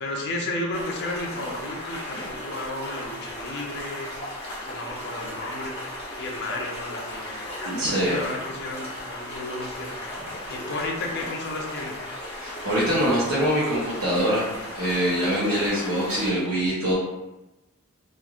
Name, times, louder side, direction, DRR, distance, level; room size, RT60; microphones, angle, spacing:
voice 1, 0.0-4.1 4.6-5.7 6.2-9.9 10.5-12.0, left 2 dB, 50° left, 0 dB, 0.5 m, -33 dB
sound 1, 0.7-16.3, left 1 dB, 30° left, 1.1 m, -36 dB
voice 2, 7.6-8.2 12.4-14.5 14.7-16.9, equal, 85° right, -9 dB, 0.8 m, -24 dB
3.0 x 2.4 x 2.4 m, 1.0 s
head